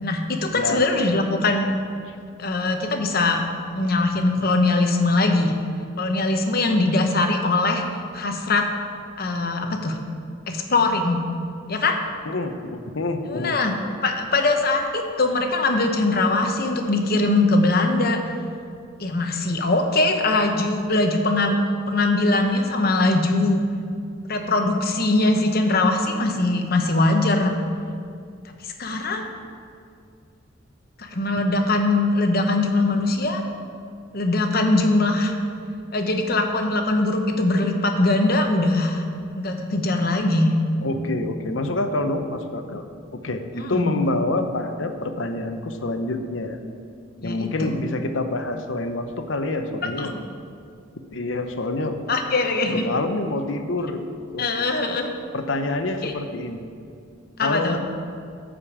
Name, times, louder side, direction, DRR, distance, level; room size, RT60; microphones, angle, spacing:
voice 1, 0.0-1.7 2.4-3.4 3.7-5.6 6.0-7.8 8.1-8.7 9.2-10.0 10.5-11.3 11.7-12.0 13.3-13.7 14.0-18.2 19.0-21.6 21.9-23.6 24.3-27.5 28.6-29.3 31.0-33.4 34.1-35.3 35.9-39.0 39.3-40.5 43.5-44.0 47.2-47.8 50.0-50.1 52.1-52.8 54.4-55.1 56.0-56.1 57.4-57.8, left 2 dB, 50° left, 4 dB, 1.0 m, -21 dB
voice 2, 0.5-0.9 12.3-13.6 40.8-42.8 43.2-46.6 47.2-50.1 51.1-52.0 52.7-54.0 54.3-54.5 55.3-56.7 57.4-57.8, left 2 dB, 75° left, 7 dB, 0.8 m, -27 dB
12.0 x 5.2 x 7.3 m, 2.3 s
head